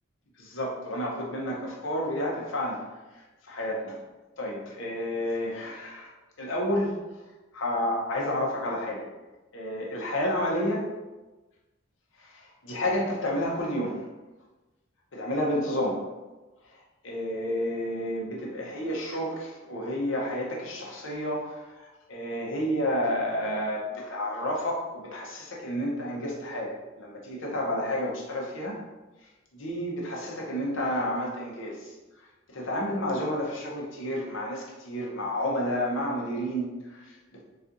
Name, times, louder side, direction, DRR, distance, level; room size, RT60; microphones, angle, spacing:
voice 1, 0.4-2.8 3.1-4.0 4.4-6.1 6.4-6.9 7.5-9.1 9.5-10.8 12.2-14.1 15.1-16.1 16.7-28.8 29.5-37.4, equal, 70° left, -2 dB, 0.8 m, -30 dB
4.1 x 2.4 x 2.5 m, 1.1 s
head